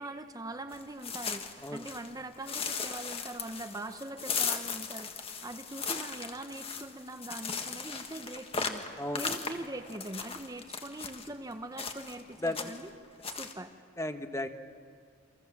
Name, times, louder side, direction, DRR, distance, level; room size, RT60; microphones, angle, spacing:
voice 1, 0.0-8.8 9.1-12.9 13.4-13.7, right 2 dB, 20° right, 7 dB, 0.9 m, -42 dB
sound 1, 0.7-2.1 2.5-11.3 11.8-12.2 12.5-12.9 13.2-13.5, left 5 dB, 30° left, 1.8 m, -37 dB
voice 2, 9.0-9.3 12.4-12.7 14.0-14.5, left 1 dB, 15° left, 7 dB, 1.2 m, -34 dB
30.0 x 25.5 x 7.4 m, 2.2 s
head